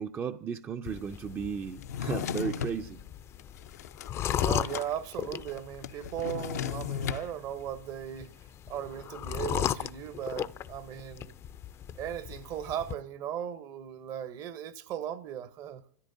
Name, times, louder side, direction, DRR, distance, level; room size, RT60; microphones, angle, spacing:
voice 1, 0.0-3.0, right 6 dB, 25° right, 0.5 m, -35 dB
sound 1, 0.9-12.9, left 10 dB, 30° left, 0.5 m, -37 dB
Drawer open or close, 1.8-2.8 3.4-4.9 5.1-5.2 5.5-7.3, left 8 dB, 80° left, 0.7 m, -35 dB
voice 2, 4.4-8.3 8.7-11.3 11.9-15.8, right 10 dB, 45° right, 0.8 m, -37 dB
26.0 x 14.0 x 2.7 m
hypercardioid pair, 105°, 9 cm